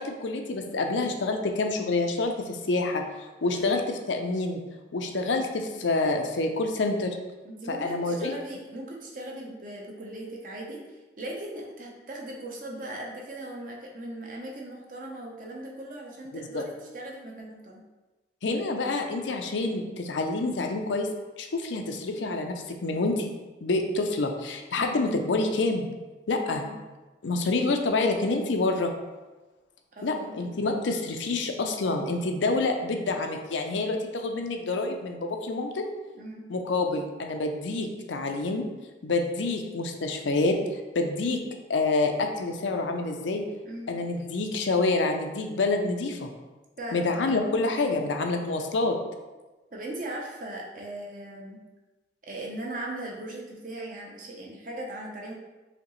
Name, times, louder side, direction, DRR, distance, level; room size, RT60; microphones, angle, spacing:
voice 1, 0.0-3.0 3.4-4.6 4.9-7.2 7.7-8.3 16.5-16.6 18.4-21.1 21.4-23.3 23.6-25.9 26.3-26.7 27.2-28.9 30.0-35.8 36.5-38.6 39.0-41.4 41.7-43.4 43.9-46.3 46.9-49.0, left 3 dB, 80° left, 4 dB, 0.5 m, -27 dB
voice 2, 3.4-3.7 7.4-17.8 24.8-25.0 26.5-26.8 29.9-30.4 36.1-36.4 43.6-43.9 46.8-47.5 49.7-51.6 52.2-55.3, right 1 dB, 45° right, -1 dB, 0.7 m, -39 dB
5.0 x 2.9 x 3.1 m, 1.2 s
head